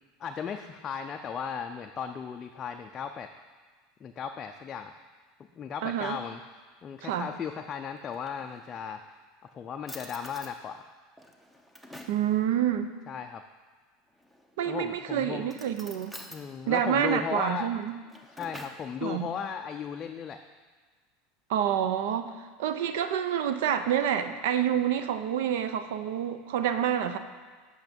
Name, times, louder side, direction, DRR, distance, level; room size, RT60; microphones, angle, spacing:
voice 1, 0.2-3.3 4.0-4.9 5.5-6.4 6.8-9.0 9.5-10.9 13.1-13.4 14.7-15.6 16.3-17.7 18.3-20.4, left 7 dB, 30° left, 5 dB, 0.4 m, -36 dB
voice 2, 5.8-6.2 7.0-7.3 12.1-12.9 14.6-16.2 16.7-18.0 19.0-19.3 21.5-27.2, right 9 dB, 80° right, 9 dB, 0.6 m, -28 dB
Drawer open or close, 8.0-8.9 9.5-9.6 9.9-10.6 11.2-12.3 14.1-14.7 15.4-16.4 17.8-18.9, left 1 dB, 5° right, 0.8 m, -47 dB
8.3 x 6.4 x 5.2 m, 1.4 s
supercardioid pair, 135°, 0 cm